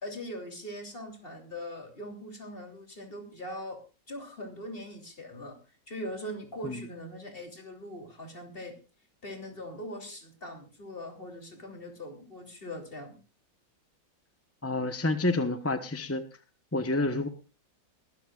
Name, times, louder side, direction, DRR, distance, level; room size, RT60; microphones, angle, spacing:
voice 1, 0.0-3.8 4.1-5.6 5.9-8.7 9.2-13.2, equal, 30° left, 4 dB, 3.4 m, -41 dB
voice 2, 14.6-16.2 16.7-17.3, left 2 dB, 10° left, 9 dB, 0.7 m, -29 dB
22.0 x 13.5 x 2.4 m, 0.32 s
omnidirectional pair, 2.0 m